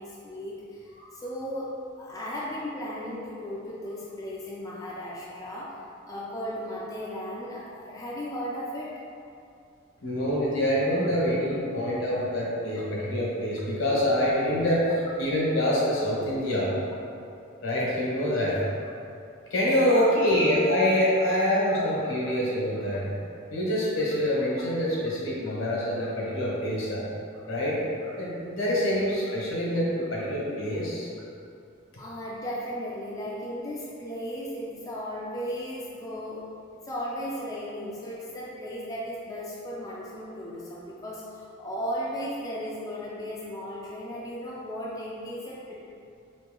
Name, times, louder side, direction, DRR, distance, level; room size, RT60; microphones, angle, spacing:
voice 1, 0.0-1.7 2.0-5.7 6.0-8.9 12.2-12.3 18.6-18.7 19.8-20.4 21.2-21.3 21.7-22.1 24.6-24.7 28.0-28.1 32.0-36.4 36.8-45.7, equal, 15° left, -6 dB, 0.3 m, -36 dB
voice 2, 10.0-16.7 17.6-18.6 19.5-23.1 23.5-27.0 27.5-27.8 28.2-31.1, equal, 70° left, -6 dB, 0.9 m, -25 dB
2.9 x 2.7 x 3.7 m, 2.6 s
head